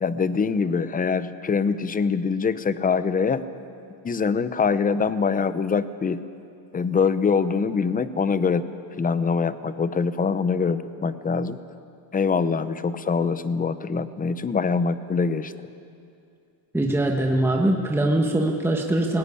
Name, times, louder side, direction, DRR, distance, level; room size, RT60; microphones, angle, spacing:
voice 1, 0.0-3.4 4.0-6.2 6.7-8.6 9.0-11.6 12.1-15.5, left 5 dB, 20° left, 13 dB, 0.7 m, -24 dB
voice 2, 16.7-19.2, right 1 dB, 5° right, 1 dB, 1.4 m, -22 dB
19.0 x 17.0 x 9.9 m, 2.5 s
cardioid pair, 130°, 44 cm